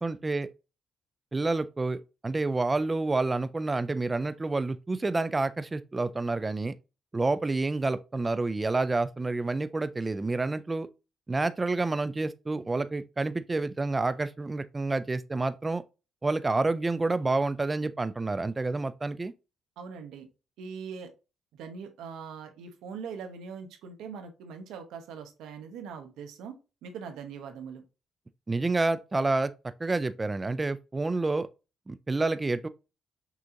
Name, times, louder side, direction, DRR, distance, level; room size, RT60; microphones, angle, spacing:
voice 1, 0.0-0.5 1.3-2.0 2.2-6.7 7.1-10.9 11.3-15.8 16.2-19.3 28.5-29.5 29.8-31.5 31.9-32.7, right 3 dB, 20° right, 0.3 m, -28 dB
voice 2, 19.8-20.3 20.6-21.1 21.6-26.5 26.8-27.8, right 6 dB, 90° right, 0.9 m, -41 dB
6.1 x 2.8 x 2.6 m
cardioid pair, 90°, 0 cm